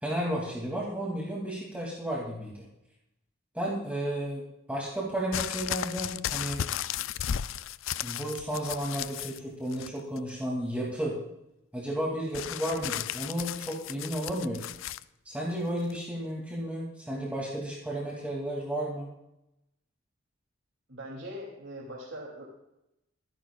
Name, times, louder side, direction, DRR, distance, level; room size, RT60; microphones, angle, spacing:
voice 1, 0.0-2.7 3.5-4.4 4.7-6.6 8.0-11.2 11.7-14.6 15.2-19.1, right 1 dB, 5° right, -5 dB, 2.5 m, -33 dB
sound 1, 5.3-9.4 9.7-10.3 12.3-15.0 15.9-16.0, left 10 dB, 75° left, 0.4 m, -35 dB
voice 2, 20.9-22.5, equal, 70° right, -3 dB, 2.8 m, -41 dB
24.5 x 11.0 x 2.4 m, 0.87 s
head